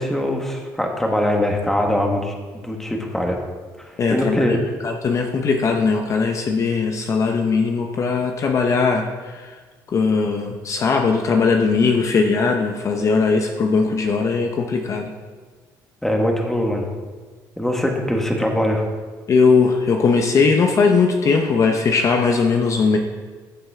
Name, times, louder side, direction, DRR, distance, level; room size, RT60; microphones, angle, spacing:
voice 1, 0.0-3.4 3.8-4.6 16.0-16.9 17.6-18.8, left 1 dB, 5° left, 1 dB, 1.7 m, -22 dB
voice 2, 4.0-9.5 9.9-15.1 19.3-23.0, left 4 dB, 45° left, 4 dB, 0.9 m, -19 dB
14.5 x 7.4 x 3.7 m, 1.5 s
cardioid pair, 100°, 8 cm